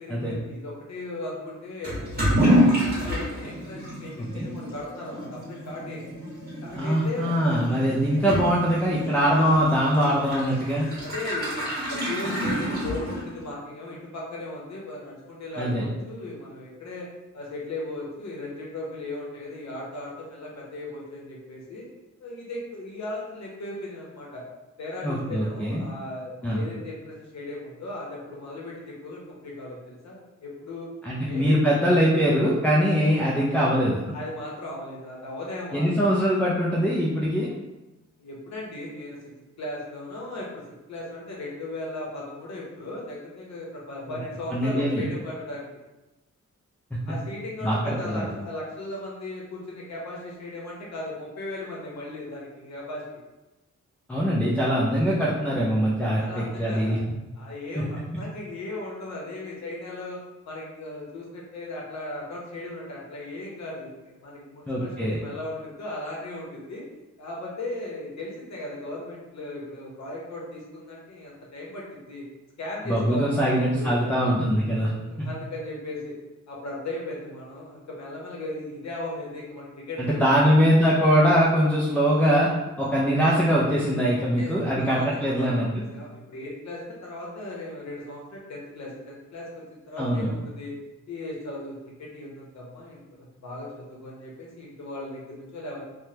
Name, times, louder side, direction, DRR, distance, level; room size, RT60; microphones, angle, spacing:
voice 1, 0.0-6.1 6.6-7.3 10.9-17.1 17.3-21.9 22.2-24.4 24.8-30.9 31.2-31.5 34.1-36.1 38.2-39.2 39.6-40.6 40.9-45.7 47.1-53.0 56.1-57.0 57.4-66.8 67.2-72.2 72.6-74.3 74.9-76.2 76.5-80.6 84.2-90.7 91.1-95.8, left 1 dB, 65° left, -3 dB, 0.8 m, -37 dB
Toilet flush / Liquid, 1.8-13.5, equal, 30° right, 1.5 m, -28 dB
voice 2, 6.7-10.9 15.6-15.8 25.0-25.8 26.4-26.6 31.0-34.0 35.7-37.5 44.5-45.1 47.6-48.3 54.1-57.0 57.8-57.9 64.7-65.2 72.9-74.9 75.2-75.3 80.0-82.5 82.8-85.7 90.0-90.3, equal, 5° left, -5 dB, 0.3 m, -22 dB
3.3 x 2.1 x 2.8 m, 1.0 s
wide cardioid pair, 145°, 29 cm